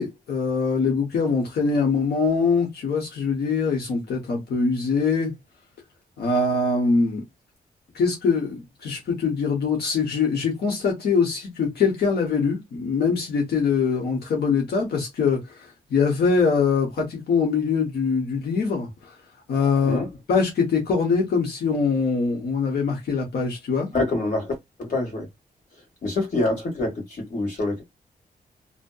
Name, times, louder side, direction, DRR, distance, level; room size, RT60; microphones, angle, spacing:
voice 1, 0.0-5.3 6.2-7.2 7.9-19.1 19.5-20.0 20.3-23.9, left 5 dB, 85° left, 1.0 m, -23 dB
voice 2, 23.9-25.3 26.0-27.8, left 2 dB, 50° left, 1.4 m, -26 dB
2.7 x 2.1 x 2.2 m
wide cardioid pair, 160°, 16 cm